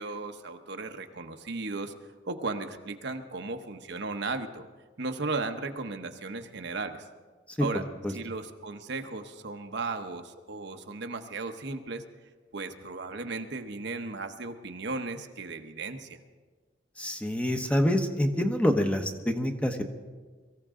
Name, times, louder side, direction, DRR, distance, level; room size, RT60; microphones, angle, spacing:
voice 1, 0.0-1.9 2.3-4.7 5.0-7.0 7.6-7.8 8.1-12.0 12.5-16.2, right 3 dB, 60° right, 6 dB, 1.0 m, -35 dB
voice 2, 17.0-19.8, left 1 dB, 5° left, 5 dB, 0.9 m, -26 dB
23.5 x 15.0 x 3.7 m, 1.4 s
head